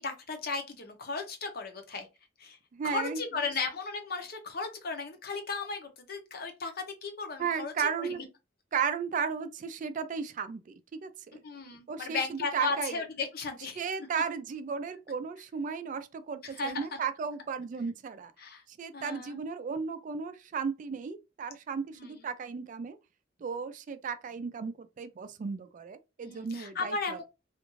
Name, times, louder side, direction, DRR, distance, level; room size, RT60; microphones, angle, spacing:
voice 1, 0.0-2.1 2.4-2.6 2.8-8.2 11.4-13.8 16.4-16.9 18.4-18.6 18.9-19.4 21.9-22.2 26.2-27.2, left 4 dB, 55° left, 0.7 m, -35 dB
voice 2, 2.7-3.2 7.4-8.2 8.7-10.7 11.0-11.4 11.9-13.0 13.8-18.3 18.8-23.0 23.4-27.2, right 6 dB, 45° right, 0.3 m, -35 dB
2.5 x 2.4 x 3.0 m
head